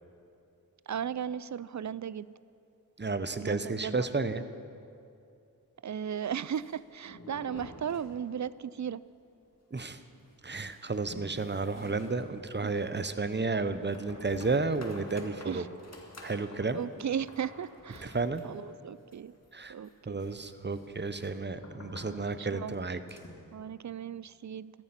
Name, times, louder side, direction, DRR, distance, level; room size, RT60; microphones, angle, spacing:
voice 1, 0.9-2.3 3.4-4.1 4.3-4.5 5.8-9.0 12.6-12.7 15.4-15.7 16.7-18.2 18.4-19.3 19.7-20.2 22.1-22.7 23.5-24.7, right 8 dB, 50° right, 18 dB, 0.4 m, -36 dB
voice 2, 3.0-4.4 9.7-10.0 10.4-15.7 16.2-16.8 18.0-18.4 19.5-19.7 20.1-23.0, right 3 dB, 30° right, 12 dB, 0.8 m, -32 dB
sound 1, 6.3-8.7 8.9-9.0 9.3-9.4 9.9-23.5, left 1 dB, 45° left, 2.1 m, -51 dB
14.0 x 14.0 x 5.9 m, 2.6 s
cardioid pair, 40°, 36 cm